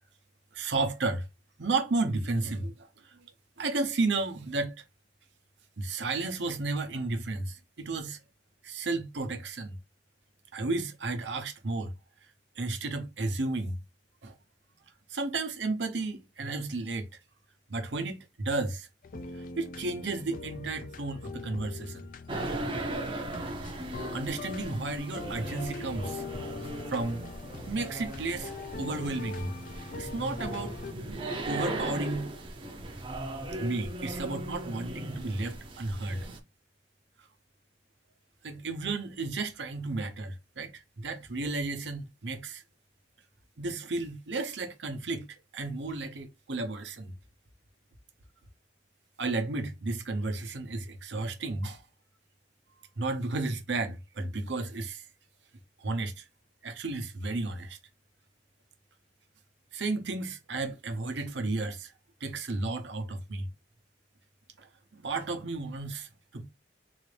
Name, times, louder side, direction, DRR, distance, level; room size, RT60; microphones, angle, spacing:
voice 1, 0.5-1.3 1.6-3.2 3.6-4.7 5.8-8.2 8.6-9.8 10.5-11.9 12.6-13.8 14.2-14.4 15.1-17.1 17.7-18.9 19.6-22.1 24.1-26.2 26.9-27.3 27.7-29.5 30.0-30.8 31.5-32.3 33.6-36.3 38.4-42.6 43.6-45.3 45.5-47.1 49.2-51.8 53.0-55.0 55.8-56.2 56.6-57.8 59.7-61.9 62.2-63.5 64.6-64.7 64.9-66.5, right 3 dB, 70° right, 0.8 m, -33 dB
sound 1, 19.0-30.9, left 3 dB, 45° left, 0.4 m, -42 dB
sound 2, 22.3-36.4, right 1 dB, 25° right, 0.6 m, -38 dB
4.0 x 2.5 x 3.3 m
head